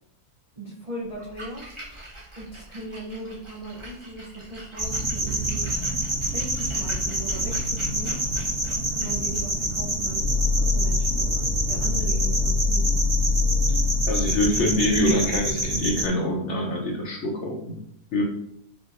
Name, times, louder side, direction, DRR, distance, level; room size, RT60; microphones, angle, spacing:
voice 1, 0.6-1.7 2.4-5.7 6.3-8.1 8.9-12.9, right 2 dB, 75° right, -6 dB, 0.3 m, -38 dB
Splash splatter, 1.1-11.0, right 1 dB, 25° right, 0.8 m, -45 dB
sound 1, 4.8-16.1, right 1 dB, 50° right, 2.1 m, -27 dB
sound 2, 10.2-15.6, left 4 dB, 70° left, 1.3 m, -25 dB
voice 2, 14.1-17.8 18.1-18.2, left 1 dB, 55° left, -1 dB, 0.9 m, -25 dB
5.1 x 2.7 x 2.5 m, 0.74 s
omnidirectional pair, 1.7 m